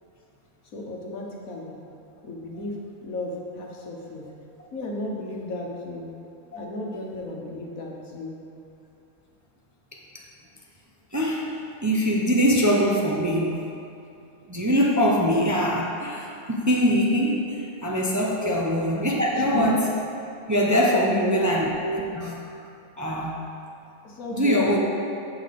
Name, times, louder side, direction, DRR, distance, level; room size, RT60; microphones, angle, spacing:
voice 1, 0.7-1.8 2.2-4.3 4.7-6.1 6.5-8.4 18.4-18.5 19.3-19.7 20.9-21.3 24.0-24.8, left 2 dB, 75° left, -2 dB, 1.8 m, -34 dB
voice 2, 11.1-13.6 14.5-19.9 20.5-22.4 23.0-23.4 24.3-24.8, equal, 15° right, -2 dB, 0.7 m, -23 dB
14.5 x 5.8 x 4.2 m, 2.6 s
omnidirectional pair, 1.5 m